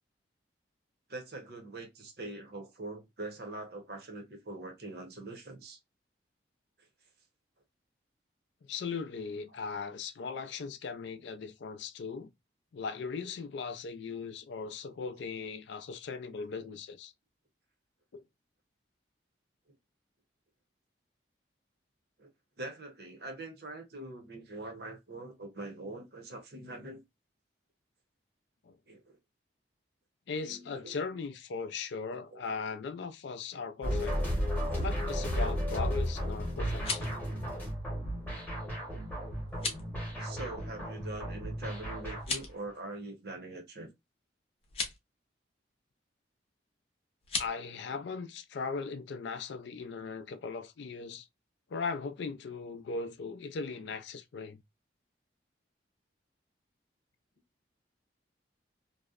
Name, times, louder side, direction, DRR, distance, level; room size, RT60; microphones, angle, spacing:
voice 1, 1.1-5.8 6.8-6.9 16.6-16.7 22.2-22.3 22.6-27.0 28.9-29.2 30.4-30.9 32.1-32.5 40.2-43.9, right 2 dB, 55° right, 0.7 m, -43 dB
voice 2, 8.7-12.3 12.7-17.1 18.1-18.2 28.6-28.8 30.3-34.2 34.7-37.1 47.4-51.3 51.7-54.6, left 5 dB, 70° left, 0.4 m, -38 dB
sound 1, 33.8-42.4, equal, 10° left, 0.9 m, -34 dB
sound 2, 36.6-37.2 39.5-39.9 42.1-42.6 44.6-45.0 47.2-47.5, left 4 dB, 30° left, 0.6 m, -36 dB
2.7 x 2.0 x 2.3 m
head